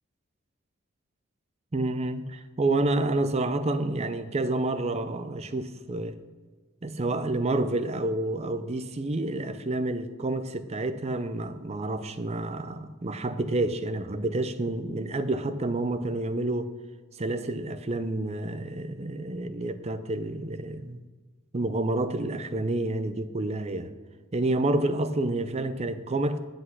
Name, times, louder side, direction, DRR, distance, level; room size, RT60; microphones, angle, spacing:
voice 1, 1.7-6.2 6.8-16.7 17.2-21.0 21.5-23.9 24.3-26.4, right 2 dB, 30° right, 11 dB, 0.5 m, -29 dB
8.0 x 7.9 x 6.1 m, 1.4 s
head